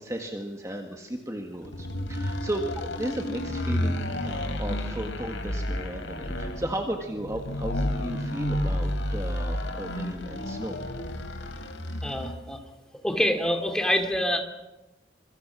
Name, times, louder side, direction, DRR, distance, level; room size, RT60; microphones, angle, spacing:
voice 1, 0.0-10.8, right 1 dB, 15° right, 3 dB, 1.7 m, -35 dB
sound 1, 1.6-12.4, left 1 dB, 85° left, 3.7 m, -31 dB
voice 2, 12.0-12.6 13.0-14.4, equal, 5° left, 5 dB, 2.6 m, -26 dB
26.5 x 24.0 x 6.2 m, 1.0 s
head